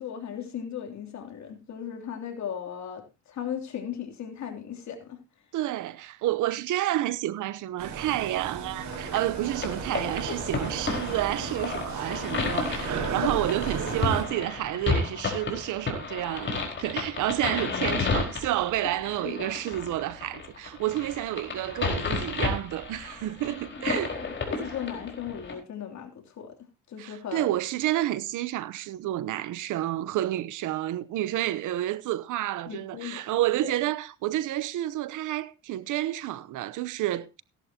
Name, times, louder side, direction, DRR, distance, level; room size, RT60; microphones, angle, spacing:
voice 1, 0.0-5.2 12.3-12.6 13.2-13.5 19.2-19.5 24.2-26.5 26.9-27.6 32.7-33.2 33.6-33.7, left 8 dB, 65° left, 3.2 m, -37 dB
voice 2, 5.5-24.2 27.0-37.4, right 14 dB, 85° right, 0.9 m, -30 dB
sound 1, 7.8-14.2, right 5 dB, 65° right, 4.4 m, -34 dB
sound 2, 8.8-25.5, left 4 dB, 40° left, 4.5 m, -32 dB
16.0 x 11.5 x 2.9 m
cardioid pair, 90°, 30 cm